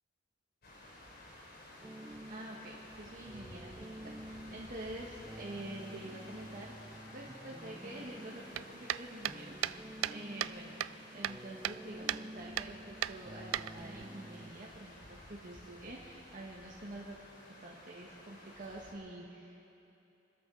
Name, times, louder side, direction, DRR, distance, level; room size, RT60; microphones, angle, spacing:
sound 1, 0.6-18.9, left 1 dB, 55° left, 3.8 m, -54 dB
sound 2, 1.8-14.5, right 1 dB, 15° right, 0.4 m, -50 dB
voice 1, 2.3-6.7 7.1-17.2 17.6-19.7, right 1 dB, 45° right, -4 dB, 1.6 m, -47 dB
sound 3, 8.5-10.6 10.8-11.8 12.1-12.2 12.6-12.7 13.0-14.1, right 12 dB, 90° right, 0.3 m, -36 dB
27.0 x 13.5 x 4.0 m, 2.9 s
head